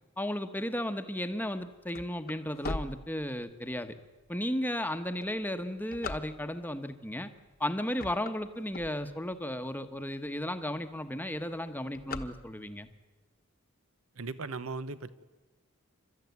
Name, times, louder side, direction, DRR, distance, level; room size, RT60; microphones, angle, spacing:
voice 1, 0.2-4.0 4.3-7.3 7.6-12.9, left 1 dB, 10° left, 8 dB, 1.1 m, -34 dB
sound 1, 1.4-3.7 4.3-4.4 5.0-6.8 7.4-7.6 7.9-9.4 9.9-10.0 10.3-10.4 10.7-11.0 11.3-12.9, left 3 dB, 45° left, 1.2 m, -40 dB
voice 2, 14.2-15.1, right 3 dB, 70° right, 14 dB, 1.0 m, -37 dB
29.0 x 13.5 x 9.5 m, 1.2 s
head